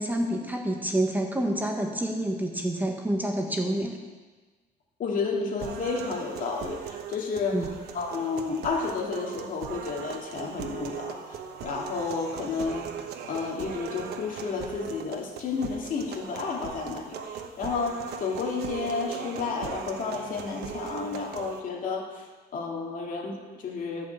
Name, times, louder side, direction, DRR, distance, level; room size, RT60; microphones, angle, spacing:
voice 1, 0.0-3.9 7.5-7.7, right 1 dB, 10° right, 2 dB, 1.4 m, -28 dB
voice 2, 5.0-12.9 13.3-22.3 22.5-24.1, left 4 dB, 55° left, 0 dB, 2.3 m, -31 dB
sound 1, 5.6-21.6, right 7 dB, 75° right, 1.2 m, -39 dB
13.5 x 5.7 x 8.1 m, 1.3 s
cardioid pair, 110°, 17 cm